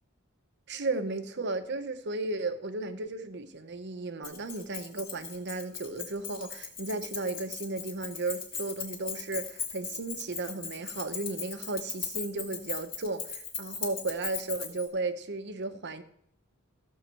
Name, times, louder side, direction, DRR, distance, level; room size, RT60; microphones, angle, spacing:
voice 1, 0.7-16.0, right 3 dB, 55° right, 1.0 m, -34 dB
Keys jangling, 4.2-14.9, left 6 dB, 45° left, 2.4 m, -38 dB
14.5 x 5.7 x 7.6 m
head